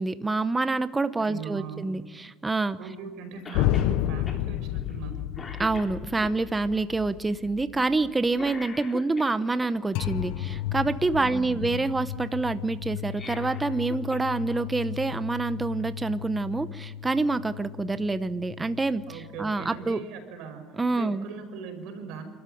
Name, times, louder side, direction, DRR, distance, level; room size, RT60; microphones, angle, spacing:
voice 1, 0.0-2.8 5.6-20.0 20.8-21.3, right 3 dB, 15° right, 12 dB, 0.8 m, -27 dB
voice 2, 1.2-1.9 2.8-5.2 11.1-11.6 19.1-22.2, right 5 dB, 75° right, 6 dB, 5.2 m, -40 dB
sound 1, 3.5-8.6 9.9-19.9, left 12 dB, 80° left, 0.8 m, -33 dB
Cough, 3.5-3.9 4.3-4.4 4.9-5.1 5.4-6.3 8.3-9.7 13.0-14.3 14.6-14.7 15.8-15.9, left 4 dB, 25° left, 3.4 m, -41 dB
28.0 x 13.0 x 9.2 m, 1.4 s
cardioid pair, 130°, 0 cm